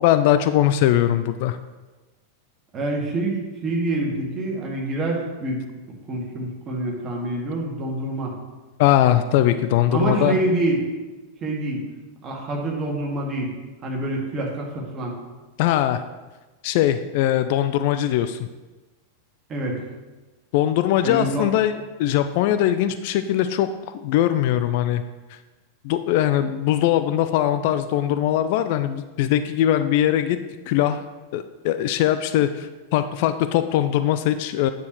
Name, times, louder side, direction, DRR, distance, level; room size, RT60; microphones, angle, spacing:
voice 1, 0.0-1.6 8.8-10.4 15.6-16.0 16.6-18.5 20.5-25.0 25.8-30.4 30.7-31.0 31.3-34.7, left 12 dB, 50° left, 10 dB, 0.3 m, -21 dB
voice 2, 2.7-5.6 6.1-8.3 9.9-10.8 11.4-11.8 12.2-13.5 13.8-15.1 19.5-19.8 21.0-21.5, right 2 dB, 25° right, -2 dB, 2.1 m, -26 dB
9.4 x 6.9 x 3.2 m, 1.2 s
figure-of-eight pair, 90°, 0 cm